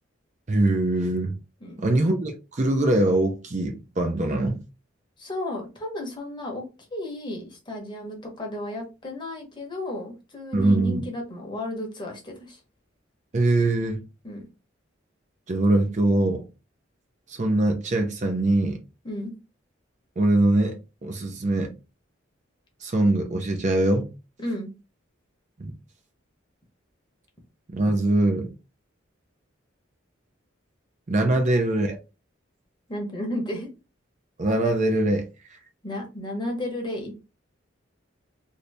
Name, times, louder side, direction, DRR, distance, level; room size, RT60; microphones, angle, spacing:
voice 1, 0.5-1.4 1.8-4.6 10.5-11.0 13.3-14.0 15.5-16.4 17.3-18.8 20.2-21.7 22.8-24.1 25.6-25.7 27.7-28.5 31.1-32.0 34.4-35.3 35.5-35.6, right 2 dB, 35° right, 0.5 m, -22 dB
voice 2, 5.2-6.7 6.9-12.6 14.2-14.4 19.0-19.3 24.4-24.7 32.9-33.7 35.8-37.1, left 1 dB, 25° left, 0.9 m, -33 dB
2.7 x 2.7 x 3.3 m
head